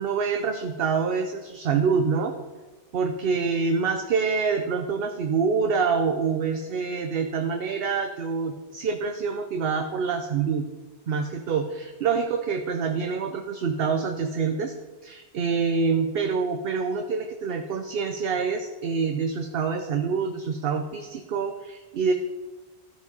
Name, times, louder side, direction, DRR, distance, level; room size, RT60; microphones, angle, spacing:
voice 1, 0.0-2.3 2.9-10.7 11.1-14.7 15.0-22.1, right 5 dB, 65° right, 5 dB, 0.8 m, -26 dB
13.5 x 4.9 x 5.3 m, 1.3 s
omnidirectional pair, 1.1 m